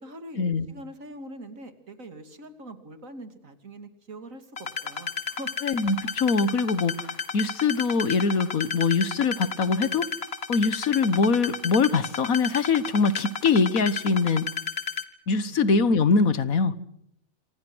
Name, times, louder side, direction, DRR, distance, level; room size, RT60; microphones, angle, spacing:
voice 1, 0.0-5.5 15.5-15.6, right 1 dB, 75° right, 9 dB, 3.0 m, -43 dB
sound 1, 4.6-15.0, left 5 dB, 50° left, 1.8 m, -32 dB
voice 2, 5.6-7.1 7.3-10.1 10.5-14.5 15.3-16.7, left 4 dB, 85° left, 15 dB, 1.8 m, -23 dB
27.5 x 26.5 x 6.3 m, 0.74 s
omnidirectional pair, 1.4 m